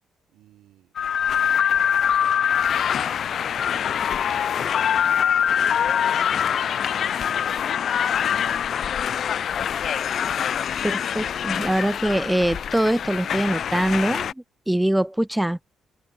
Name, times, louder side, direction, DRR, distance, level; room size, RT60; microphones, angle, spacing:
voice 1, 0.3-4.7 5.3-9.0, right 13 dB, 85° right, 4.5 m, -56 dB
sound 1, 1.0-14.3, left 8 dB, 60° left, 0.4 m, -24 dB
voice 2, 10.8-14.3 14.7-15.6, right 1 dB, 5° right, 0.5 m, -23 dB
cardioid pair, 90°, 0 cm